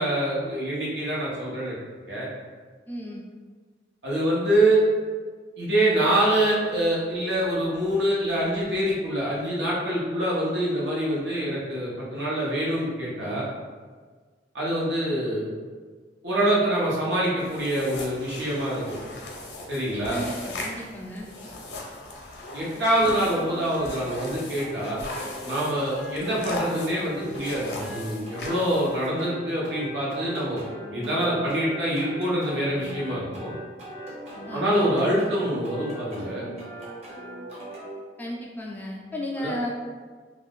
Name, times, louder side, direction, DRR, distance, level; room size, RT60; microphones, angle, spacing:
voice 1, 0.0-1.7 2.1-2.3 4.0-4.8 5.6-13.4 14.5-15.5 16.2-19.0 19.7-20.2 22.5-25.0 25.4-30.6 30.9-33.5 34.5-36.5 39.4-39.5, right 1 dB, 80° right, -6 dB, 1.0 m, -25 dB
voice 2, 2.9-3.2 20.1-21.3 34.5-34.7 38.2-39.7, left 1 dB, 10° left, -3 dB, 0.3 m, -34 dB
sound 1, 17.4-29.1, left 2 dB, 65° left, 0.6 m, -38 dB
sound 2, 23.2-38.0, equal, 35° right, 0.7 m, -40 dB
2.4 x 2.4 x 3.5 m, 1.5 s
head